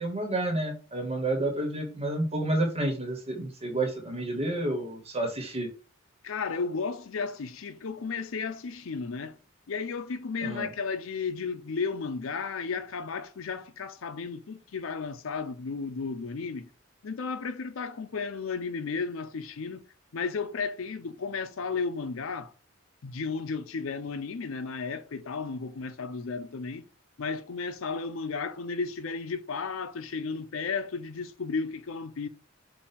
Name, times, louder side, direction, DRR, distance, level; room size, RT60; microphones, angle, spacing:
voice 1, 0.0-5.7 10.4-10.7, right 1 dB, 30° right, 1.1 m, -30 dB
voice 2, 6.2-9.4 9.7-16.7 17.0-19.8 20.1-22.5 23.0-26.8 27.2-32.3, left 5 dB, 80° left, 0.5 m, -33 dB
5.4 x 2.3 x 4.2 m
head